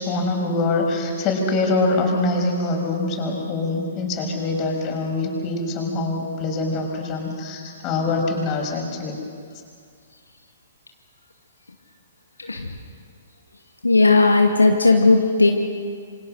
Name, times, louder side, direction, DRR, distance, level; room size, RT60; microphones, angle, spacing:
voice 1, 0.0-9.2, left 2 dB, 30° left, 1 dB, 6.7 m, -24 dB
voice 2, 13.8-15.5, left 3 dB, 85° left, 2 dB, 2.2 m, -16 dB
28.0 x 25.5 x 6.6 m, 2.2 s
figure-of-eight pair, 120°, 0 cm